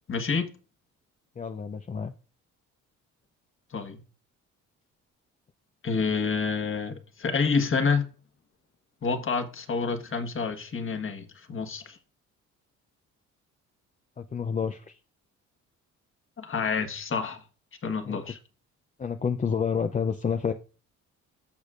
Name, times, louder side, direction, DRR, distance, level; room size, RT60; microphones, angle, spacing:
voice 1, 0.1-0.5 3.7-4.0 5.8-8.1 9.0-12.0 16.4-17.4 17.8-18.4, left 5 dB, 45° left, 1.5 m, -28 dB
voice 2, 1.4-2.1 14.2-15.0 18.0-18.2 19.0-20.5, left 6 dB, 25° left, 0.5 m, -29 dB
14.5 x 5.1 x 2.5 m
cardioid pair, 90°, 30 cm